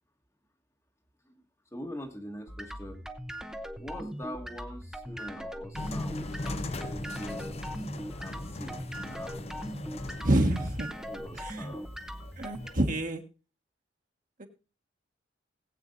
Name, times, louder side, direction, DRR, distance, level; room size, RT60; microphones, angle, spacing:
voice 1, 1.7-3.0 3.8-7.5 8.2-9.4 11.0-11.9, equal, 15° left, 4 dB, 1.3 m, -43 dB
sound 1, 2.5-12.7, equal, 5° right, 0.8 m, -40 dB
sound 2, 5.7-13.0, left 2 dB, 35° left, 0.7 m, -40 dB
voice 2, 10.2-10.9 11.3-11.7 12.4-13.2 14.4-14.5, right 1 dB, 45° right, 4 dB, 1.6 m, -27 dB
20.0 x 8.2 x 2.6 m, 0.32 s
head